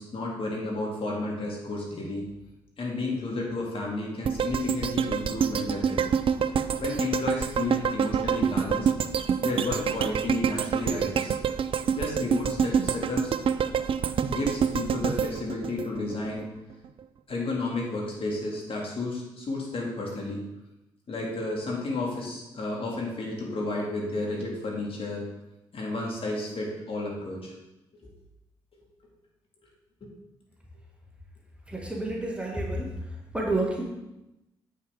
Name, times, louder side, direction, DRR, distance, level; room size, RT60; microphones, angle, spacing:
voice 1, 0.0-2.2 2.8-6.0 6.8-8.9 9.4-11.3 12.0-13.3 14.3-16.5 17.3-20.5 21.1-25.3 25.7-27.5 30.0-30.1, left 2 dB, 50° left, -2 dB, 2.1 m, -32 dB
sound 1, 4.2-16.4 16.8-16.9, right 7 dB, 45° right, 0.4 m, -27 dB
voice 2, 31.7-32.9 33.3-33.8, right 2 dB, 10° right, -2 dB, 1.8 m, -29 dB
7.9 x 5.5 x 3.5 m, 0.96 s
hypercardioid pair, 40°, 12 cm